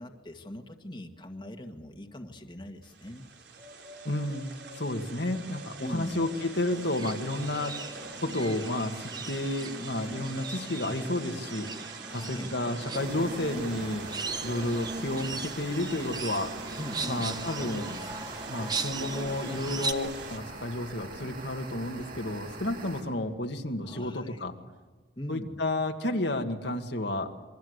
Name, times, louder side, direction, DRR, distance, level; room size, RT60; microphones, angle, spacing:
voice 1, 0.0-3.3 5.8-6.2 12.1-12.5 16.8-17.3 23.8-24.4 25.2-25.6, left 1 dB, 25° left, 4 dB, 1.9 m, -41 dB
sound 1, 2.8-20.4, right 4 dB, 65° right, 3.9 m, -44 dB
voice 2, 4.0-4.5 4.8-7.8 8.2-11.7 12.1-14.1 14.4-16.5 17.1-18.0 18.5-24.5 25.3-27.3, left 1 dB, 65° left, 4 dB, 2.0 m, -31 dB
sound 2, 6.7-19.9, right 3 dB, 20° right, 1.1 m, -38 dB
sound 3, 12.9-23.0, right 3 dB, 50° right, 6.1 m, -43 dB
28.0 x 23.5 x 8.1 m, 1.4 s
head